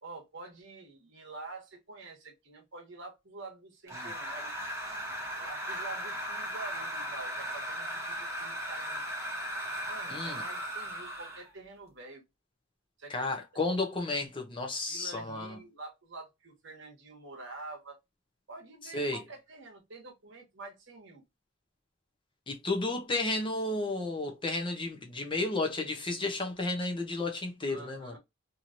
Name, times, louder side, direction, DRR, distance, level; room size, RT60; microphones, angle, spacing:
voice 1, 0.0-4.5 5.4-9.0 9.9-12.2 13.0-13.4 14.9-18.0 18.5-21.2 27.7-28.2, right 3 dB, 60° right, 1.1 m, -47 dB
sound 1, 3.9-11.5, equal, 15° right, 0.8 m, -37 dB
voice 2, 10.1-10.4 13.1-15.6 18.9-19.2 22.5-28.1, left 2 dB, 25° left, 0.6 m, -32 dB
3.0 x 2.8 x 2.5 m
head